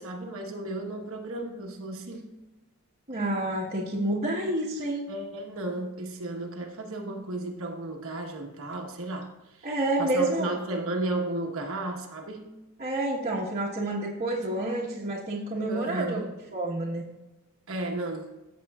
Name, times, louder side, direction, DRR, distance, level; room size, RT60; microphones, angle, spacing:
voice 1, 0.0-2.3 5.1-9.7 10.0-12.5 15.7-16.3 17.7-18.3, right 2 dB, 65° right, 2 dB, 1.1 m, -34 dB
voice 2, 3.1-5.1 9.6-10.5 12.8-16.3 16.5-17.0, right 1 dB, 35° right, -7 dB, 1.2 m, -29 dB
14.0 x 7.3 x 2.4 m, 1.1 s
head